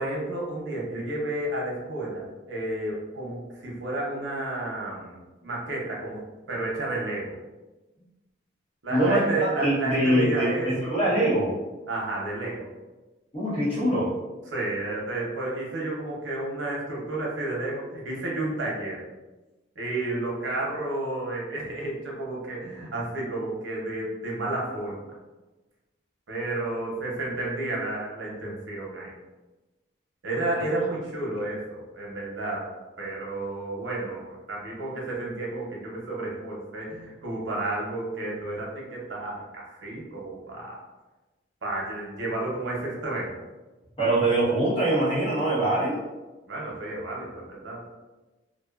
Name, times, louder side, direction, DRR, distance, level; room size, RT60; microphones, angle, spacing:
voice 1, 0.0-6.2 6.5-7.3 8.8-10.9 11.9-12.7 14.5-19.1 19.8-25.0 26.3-29.1 30.2-32.7 33.0-40.8 41.6-43.4 46.5-47.8, right 2 dB, 85° right, -3 dB, 0.7 m, -31 dB
voice 2, 8.9-11.5 13.3-14.1 44.0-46.0, right 1 dB, 30° left, -9 dB, 1.1 m, -23 dB
2.5 x 2.3 x 2.3 m, 1.1 s
head